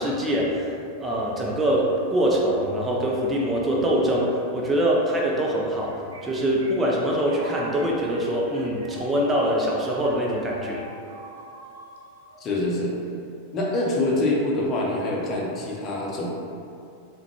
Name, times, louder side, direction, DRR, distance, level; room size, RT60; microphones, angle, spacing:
voice 1, 0.0-10.8, right 1 dB, 15° right, -3 dB, 0.5 m, -24 dB
sound 1, 5.6-13.1, equal, 80° right, 0.4 m, -43 dB
voice 2, 12.4-12.9 13.5-16.3, left 2 dB, 35° left, -3 dB, 0.6 m, -25 dB
3.7 x 2.2 x 2.9 m, 2.5 s
hypercardioid pair, 95°, 0 cm